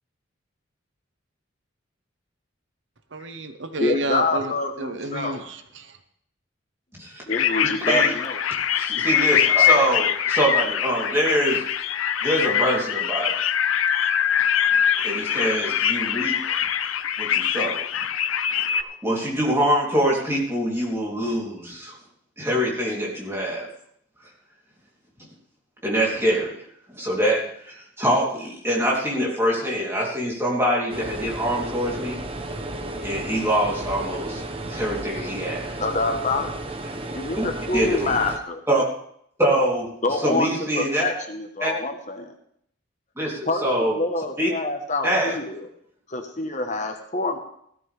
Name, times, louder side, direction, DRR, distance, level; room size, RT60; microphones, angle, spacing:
voice 1, 3.1-5.9, right 1 dB, 65° right, 8 dB, 1.0 m, -30 dB
voice 2, 3.8-5.4 7.3-8.4 35.8-36.5 37.1-38.6 40.0-40.5 40.7-42.3 43.5-45.6 46.1-47.4, left 2 dB, 35° left, 4 dB, 1.3 m, -26 dB
voice 3, 6.9-7.2 7.9-8.1 8.8-11.6 12.2-13.3 15.0-16.6 17.2-17.8 18.6-21.9 22.4-23.7 25.8-26.6 26.9-32.2 33.0-34.4 34.7-35.8 37.4-37.5 37.7-38.2 38.7-38.8 39.4-39.9 40.2-41.0 41.6-41.7 43.2-44.0 44.4-44.5 45.0-45.4, equal, 15° right, -3 dB, 3.4 m, -24 dB
sound 1, 7.3-18.8, left 9 dB, 90° left, 0.6 m, -23 dB
sound 2, 30.9-38.4, right 1 dB, 30° right, 1.1 m, -33 dB
16.5 x 13.0 x 3.5 m, 0.67 s
head